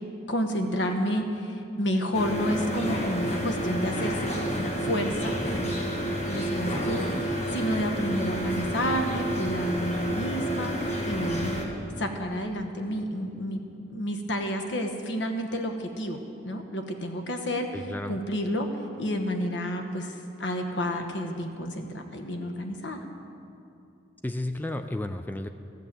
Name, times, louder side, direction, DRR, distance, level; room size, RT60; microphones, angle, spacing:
voice 1, 0.3-5.9 6.3-11.6 12.0-13.6 13.9-16.2 16.4-17.7 18.1-18.7 19.0-23.0, equal, 70° left, 5 dB, 1.1 m, -30 dB
sound 1, 2.1-11.7, equal, 35° left, 1.4 m, -30 dB
voice 2, 17.7-18.2 24.2-25.5, left 1 dB, 10° left, 8 dB, 0.3 m, -32 dB
14.5 x 6.7 x 7.5 m, 2.7 s
head